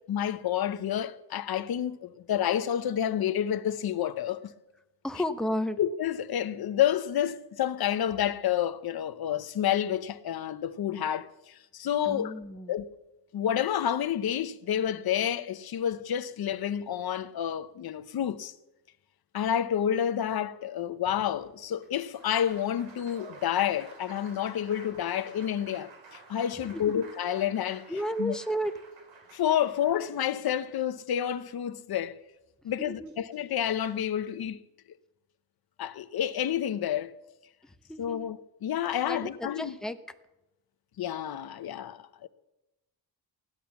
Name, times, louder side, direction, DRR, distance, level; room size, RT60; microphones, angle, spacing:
voice 1, 0.1-4.5 5.8-12.4 12.7-12.9 13.3-18.5 19.3-25.9 26.3-27.9 28.2-28.4 29.3-32.2 32.6-34.6 35.8-37.2 38.0-39.7 41.0-42.3, left 10 dB, 55° left, 0.9 m, -29 dB
voice 2, 5.0-5.8 12.0-12.7 26.7-26.8 27.9-28.7 32.8-33.1 37.6-38.3 39.1-40.0, equal, ahead, 0.8 m, -33 dB
Applause, 21.0-31.3 32.7-32.8 33.1-34.1, right 4 dB, 80° right, 3.4 m, -52 dB
16.5 x 11.0 x 7.1 m
wide cardioid pair, 155°, 44 cm